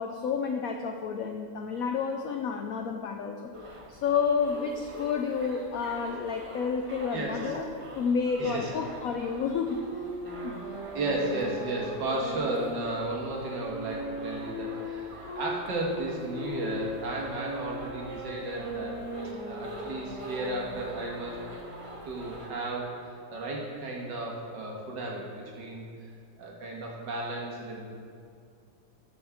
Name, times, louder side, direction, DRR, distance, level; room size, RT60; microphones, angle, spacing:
voice 1, 0.0-3.4 3.9-7.7 8.0-9.8 10.4-10.6, left 6 dB, 80° left, 4 dB, 0.7 m, -30 dB
sound 1, 3.5-22.5, right 1 dB, 35° right, 0.5 m, -46 dB
voice 2, 7.1-7.5 8.4-8.8 10.9-19.0 19.5-21.4 22.0-26.0 26.4-27.8, right 2 dB, 65° right, -2 dB, 2.1 m, -34 dB
Wind instrument woodwind instrument, 9.7-15.5 16.2-21.7, equal, 55° left, 3.2 m, -39 dB
13.5 x 6.3 x 3.5 m, 2.3 s
omnidirectional pair, 2.1 m